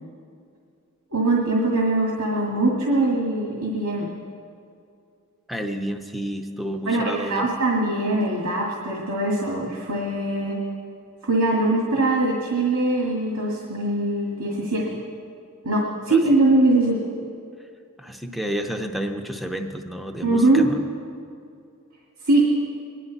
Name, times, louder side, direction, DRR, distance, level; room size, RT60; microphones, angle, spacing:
voice 1, 1.1-4.1 6.9-10.5 11.2-14.8 15.6-17.0 20.2-20.6 22.3-22.4, right 2 dB, 90° right, -3 dB, 2.1 m, -22 dB
voice 2, 5.5-7.5 16.1-16.2 18.0-20.8, equal, ahead, 4 dB, 0.7 m, -30 dB
22.0 x 11.0 x 4.1 m, 2.4 s
head